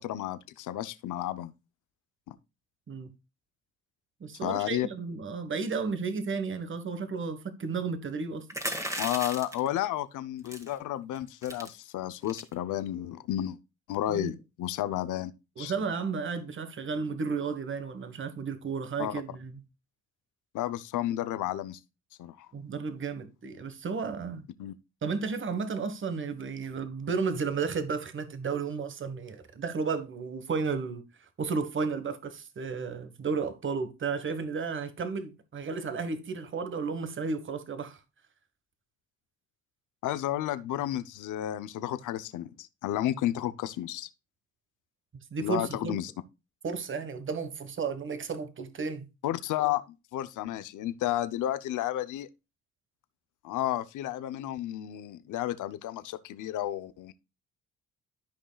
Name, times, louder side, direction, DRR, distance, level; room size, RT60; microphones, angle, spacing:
voice 1, 0.0-1.5 2.3-2.4 4.4-4.9 9.0-13.6 13.9-15.3 15.6-15.7 19.0-19.2 20.5-21.8 22.2-22.5 24.6-24.8 40.0-44.1 45.4-46.1 49.2-49.8 50.1-52.3 53.4-57.1, left 13 dB, 80° left, 0.8 m, -32 dB
voice 2, 4.2-8.4 14.1-14.3 15.6-19.6 22.5-24.5 25.0-31.0 31.4-38.0 45.1-46.0 46.6-49.1, right 5 dB, 40° right, 1.4 m, -33 dB
sound 1, 8.5-9.7 10.5-10.7 11.1-11.2 11.4-11.7 12.2-12.5, right 1 dB, 10° right, 1.9 m, -35 dB
13.0 x 5.3 x 2.3 m
cardioid pair, 90°, 30 cm